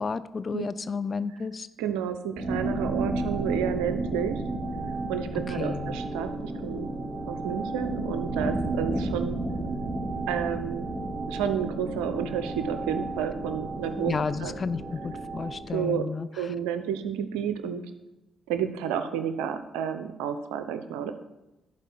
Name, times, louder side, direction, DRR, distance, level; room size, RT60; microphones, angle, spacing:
voice 1, 0.0-1.7 5.5-6.0 14.0-16.3, left 5 dB, 45° left, 14 dB, 0.5 m, -32 dB
voice 2, 1.8-4.4 5.1-6.9 7.3-9.4 10.3-10.9 11.3-14.1 14.4-14.5 15.7-16.1 16.4-17.8 18.5-21.1, right 8 dB, 80° right, 9 dB, 0.6 m, -30 dB
sound 1, 2.4-15.7, right 2 dB, 45° right, 3.1 m, -32 dB
11.0 x 4.6 x 5.9 m, 0.99 s
hypercardioid pair, 45°, 0 cm